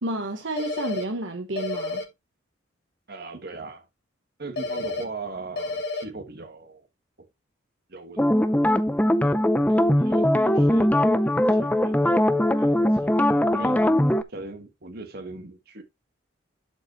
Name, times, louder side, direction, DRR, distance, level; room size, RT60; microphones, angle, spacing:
voice 1, 0.0-2.0, right 1 dB, 70° right, 1.2 m, -30 dB
sound 1, 0.6-1.0 1.6-2.0 4.6-5.0 5.6-6.0, left 3 dB, 55° left, 1.6 m, -30 dB
voice 2, 3.1-3.9 4.4-6.9 7.9-8.5 9.7-11.9 12.5-14.0 14.3-15.8, right 3 dB, 50° right, 1.7 m, -39 dB
sound 2, 8.2-14.2, left 1 dB, 10° left, 0.6 m, -20 dB
11.5 x 5.2 x 3.1 m
head